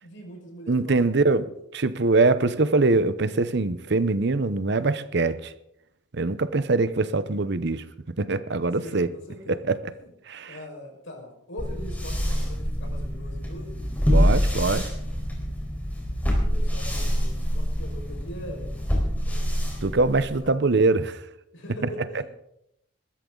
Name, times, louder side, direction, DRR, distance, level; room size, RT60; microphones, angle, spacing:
voice 1, 0.0-1.5 8.8-9.6 9.9-10.1 10.5-13.7 16.4-18.8 19.3-19.4 20.4-20.5 21.5-22.2, equal, 75° left, 1 dB, 5.3 m, -42 dB
voice 2, 0.7-1.5 1.7-5.5 6.1-7.8 8.2-9.1 9.5-9.8 10.3-10.6 14.1-14.9 19.8-21.2, right 3 dB, 60° right, 14 dB, 0.8 m, -23 dB
sound 1, 11.6-20.5, equal, 10° left, 4.3 m, -26 dB
21.0 x 13.5 x 3.9 m, 0.79 s
head